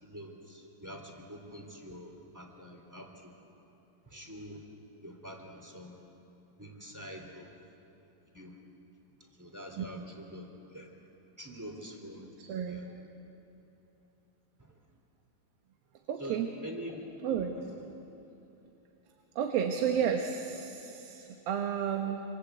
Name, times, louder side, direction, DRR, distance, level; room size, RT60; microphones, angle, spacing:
voice 1, 0.0-3.3 4.1-4.6 5.0-6.0 6.6-7.5 8.3-8.6 9.4-10.9 11.4-12.3 12.7-12.8 16.2-17.1 17.5-17.6, equal, 5° right, 2 dB, 2.6 m, -45 dB
voice 2, 12.4-12.8 16.1-16.5 17.2-17.5 19.4-22.2, right 8 dB, 80° right, 4 dB, 3.1 m, -32 dB
27.5 x 26.5 x 8.2 m, 2.8 s
omnidirectional pair, 4.1 m